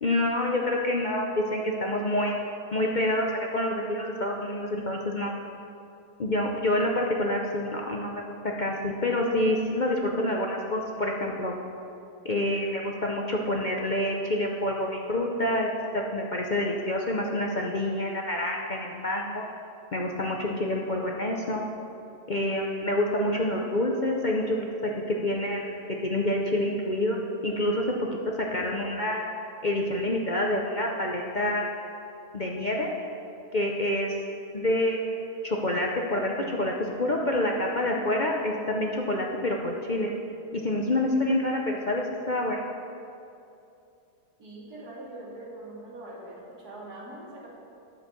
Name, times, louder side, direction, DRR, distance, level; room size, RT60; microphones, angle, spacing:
voice 1, 0.0-2.4 2.7-3.3 3.5-5.3 6.2-11.5 12.2-15.7 15.9-19.4 19.9-21.6 22.3-27.2 27.4-28.1 28.4-29.2 29.6-31.7 32.3-32.9 33.5-34.2 34.5-40.1 40.5-42.6, left 1 dB, 45° left, -1 dB, 0.6 m, -27 dB
voice 2, 44.4-47.5, right 1 dB, 90° right, -5 dB, 2.9 m, -42 dB
11.0 x 6.3 x 6.7 m, 2.7 s
omnidirectional pair, 1.6 m